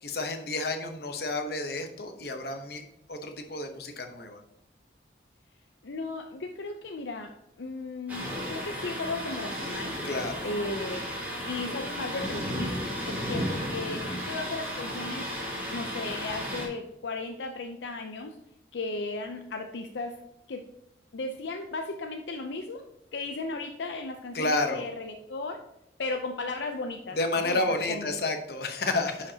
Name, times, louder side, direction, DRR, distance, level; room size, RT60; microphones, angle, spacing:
voice 1, 0.0-2.8 3.1-4.4 10.0-10.4 24.3-24.8 27.1-29.3, left 2 dB, 55° left, 5 dB, 0.9 m, -30 dB
voice 2, 5.8-10.0 10.4-11.1 11.4-18.4 18.7-20.2 20.5-20.7 21.1-22.9 23.1-25.6 26.0-28.2, left 3 dB, 75° left, 4 dB, 0.5 m, -36 dB
Thunder, 8.1-16.7, equal, 10° right, 2.0 m, -34 dB
10.0 x 5.0 x 2.8 m, 0.81 s
head